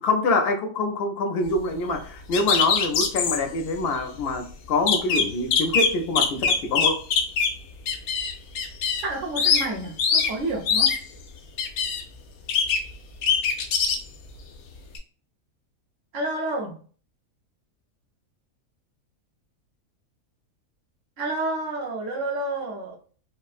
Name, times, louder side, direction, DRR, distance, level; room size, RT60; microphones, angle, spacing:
voice 1, 0.0-7.0, left 2 dB, 60° left, 4 dB, 0.6 m, -25 dB
sound 1, 2.3-3.4 4.0-4.1 4.4-4.5 4.9-7.6 7.9-9.1 9.4-9.7 10.0-10.3 10.7-11.0 11.6-12.0 12.5-12.9 13.2-14.0 14.9-15.0, left 6 dB, 85° left, 1.1 m, -22 dB
voice 2, 9.0-10.9 16.1-16.8 21.2-23.0, right 2 dB, 60° right, 0 dB, 1.1 m, -29 dB
4.2 x 2.0 x 2.4 m, 0.41 s
omnidirectional pair, 1.5 m